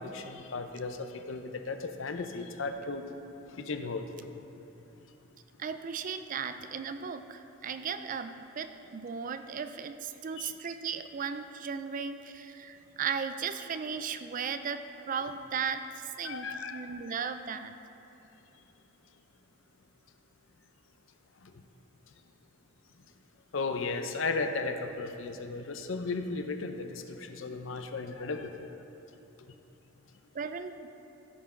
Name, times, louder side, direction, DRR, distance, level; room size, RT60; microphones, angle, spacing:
voice 1, 0.0-3.1 3.5-4.1 10.4-10.5 16.2-17.0 21.4-21.5 23.5-28.6, left 3 dB, 65° left, 7 dB, 0.6 m, -35 dB
voice 2, 5.6-17.8 30.3-30.9, right 6 dB, 40° right, 9 dB, 0.3 m, -36 dB
15.0 x 5.9 x 3.7 m, 2.9 s
head